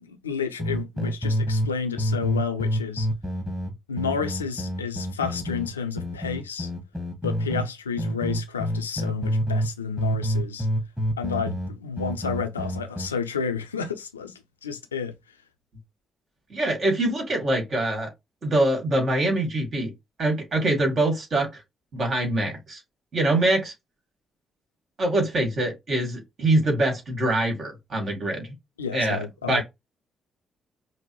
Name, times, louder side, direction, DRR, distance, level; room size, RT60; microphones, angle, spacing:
voice 1, 0.1-3.1 3.9-6.7 7.2-10.7 11.2-14.3 14.6-15.1 28.8-29.6, left 6 dB, 85° left, 0.5 m, -31 dB
sound 1, 0.6-1.7 2.0-7.7 8.0-9.7 10.0-13.1, equal, 5° right, 1.6 m, -27 dB
voice 2, 16.5-18.1 18.4-19.9 20.2-21.6 21.9-22.8 23.1-23.7 25.0-28.5 28.9-29.6, right 1 dB, 50° right, 2.0 m, -24 dB
5.2 x 2.1 x 3.1 m
figure-of-eight pair, 40°, 0 cm